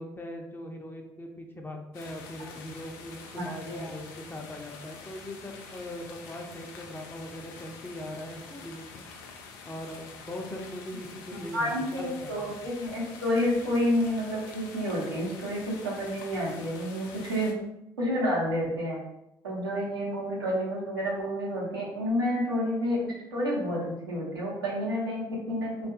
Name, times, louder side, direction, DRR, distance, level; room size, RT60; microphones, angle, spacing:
voice 1, 0.0-9.0 9.6-12.6, left 1 dB, 20° left, 2 dB, 0.6 m, -40 dB
sound 1, 1.9-17.5, left 5 dB, 75° left, 0.4 m, -47 dB
voice 2, 3.3-3.9 11.3-17.6 18.0-19.0 19.4-25.7, equal, 90° right, -5 dB, 0.8 m, -29 dB
3.4 x 2.4 x 2.7 m, 0.85 s
hypercardioid pair, 50°, 12 cm